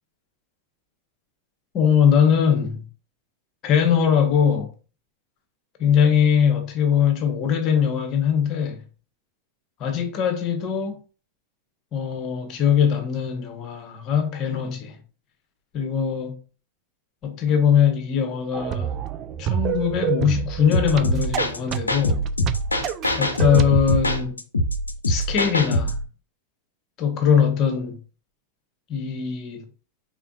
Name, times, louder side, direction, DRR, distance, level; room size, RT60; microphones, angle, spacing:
voice 1, 1.7-2.9 3.6-4.7 5.8-8.8 9.8-11.0 11.9-15.0 15.7-16.4 17.2-18.9 19.4-22.3 23.2-24.4 25.1-26.0 27.0-28.0 28.9-29.6, left 8 dB, 35° left, 1.1 m, -21 dB
sound 1, 18.5-23.7, right 10 dB, 35° right, 0.4 m, -28 dB
sound 2, 20.7-26.0, left 1 dB, 80° left, 0.7 m, -23 dB
4.8 x 3.8 x 2.5 m
figure-of-eight pair, 90°, 0 cm